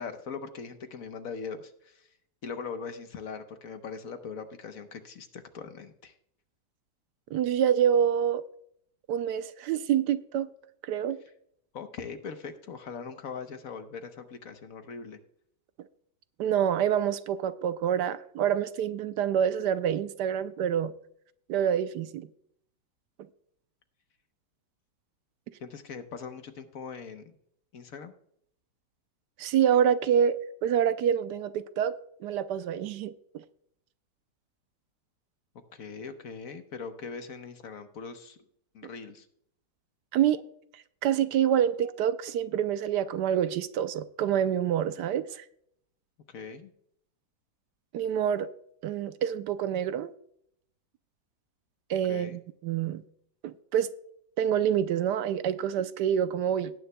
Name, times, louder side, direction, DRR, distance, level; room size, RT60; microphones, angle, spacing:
voice 1, 0.0-2.1 2.4-6.1 11.7-15.2 25.6-27.4 27.7-28.1 35.7-38.4 38.7-39.3 46.3-46.7 52.1-52.4, left 5 dB, 60° left, 1.2 m, -41 dB
voice 2, 7.3-8.4 9.1-10.5 10.8-11.2 16.4-20.9 21.5-22.3 29.4-31.9 32.2-33.4 40.1-40.4 41.0-45.4 47.9-48.5 48.8-50.1 51.9-53.0 53.4-53.9 54.4-56.7, right 9 dB, 80° right, 1.2 m, -27 dB
18.0 x 9.5 x 2.2 m
omnidirectional pair, 1.9 m